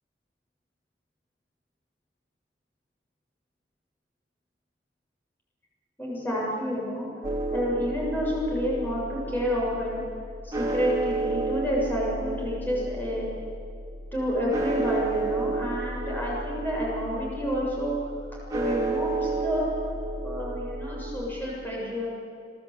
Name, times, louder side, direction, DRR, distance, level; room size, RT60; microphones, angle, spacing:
voice 1, 6.0-7.1 7.5-10.0 10.4-13.3 14.1-18.0 18.5-19.7 20.2-22.1, equal, 10° left, -5 dB, 7.2 m, -29 dB
sound 1, 7.2-21.2, right 3 dB, 20° right, 3.5 m, -32 dB
29.0 x 19.5 x 8.8 m, 2.3 s
head